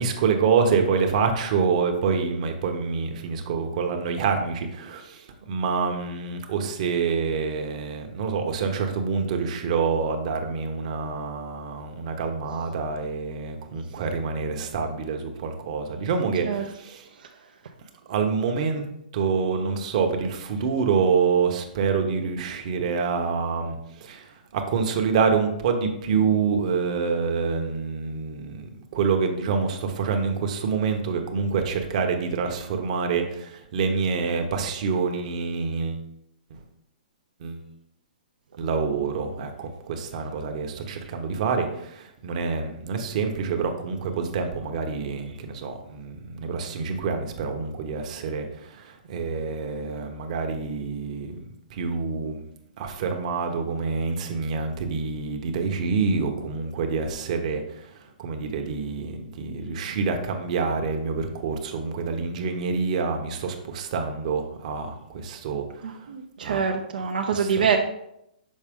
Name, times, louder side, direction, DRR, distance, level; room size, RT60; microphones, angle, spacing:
voice 1, 0.0-17.1 18.1-18.8 19.1-24.2 24.5-36.0 37.4-37.6 38.6-51.4 51.7-52.4 52.8-57.6 58.2-65.6 66.4-66.6 67.3-67.6, right 5 dB, 50° right, 4 dB, 1.0 m, -27 dB
voice 2, 65.8-67.8, right 6 dB, 75° right, 2 dB, 0.6 m, -25 dB
6.5 x 4.1 x 3.6 m, 0.79 s
hypercardioid pair, 145°, 5 cm